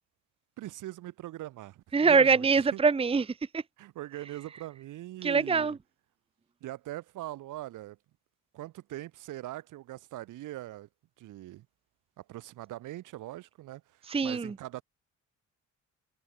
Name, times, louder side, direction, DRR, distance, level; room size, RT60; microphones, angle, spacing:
voice 1, 0.6-2.8 3.8-5.8 6.6-8.0 8.5-10.9 11.2-11.7 12.2-14.8, right 15 dB, 90° right, 5.8 m, -41 dB
voice 2, 1.9-3.6 5.2-5.7 14.1-14.5, right 5 dB, 20° right, 0.8 m, -24 dB
cardioid pair, 90°, 30 cm